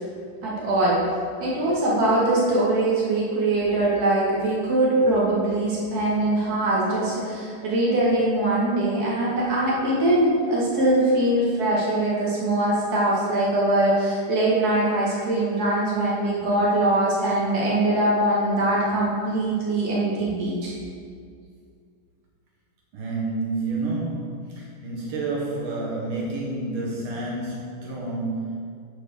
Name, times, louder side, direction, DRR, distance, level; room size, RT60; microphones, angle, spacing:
voice 1, 0.4-1.0 1.4-20.7, right 1 dB, 45° right, -6 dB, 2.2 m, -22 dB
voice 2, 22.9-28.6, right 2 dB, 80° right, -3 dB, 1.9 m, -29 dB
6.9 x 4.4 x 6.4 m, 2.2 s
omnidirectional pair, 2.3 m